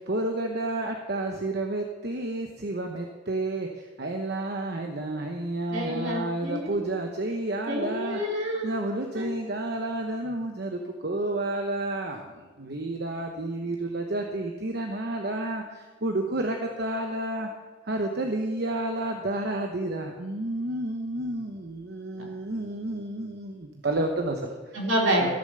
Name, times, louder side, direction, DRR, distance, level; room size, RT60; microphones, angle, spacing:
voice 1, 0.0-8.2 8.6-17.5 17.9-24.6 25.2-25.3, right 2 dB, 50° right, 3 dB, 0.9 m, -30 dB
voice 2, 5.7-6.8 7.7-8.8 9.1-9.3 22.2-22.3 24.7-25.3, equal, 70° right, -1 dB, 3.2 m, -28 dB
14.5 x 7.2 x 6.7 m, 1.3 s
head